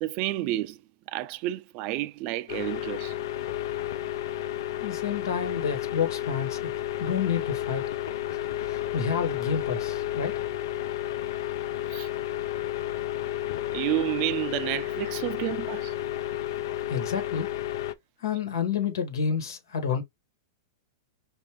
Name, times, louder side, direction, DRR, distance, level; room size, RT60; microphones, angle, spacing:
voice 1, 0.0-0.8 1.1-3.1 11.9-12.1 13.7-15.9, right 16 dB, 45° right, 0.4 m, -30 dB
sound 1, 2.5-17.9, left 12 dB, 70° left, 0.5 m, -32 dB
voice 2, 4.8-6.6 7.0-7.8 8.3-10.3 16.9-17.5 18.2-20.0, left 7 dB, 85° left, 1.7 m, -29 dB
5.4 x 2.6 x 3.0 m
hypercardioid pair, 135°, 2 cm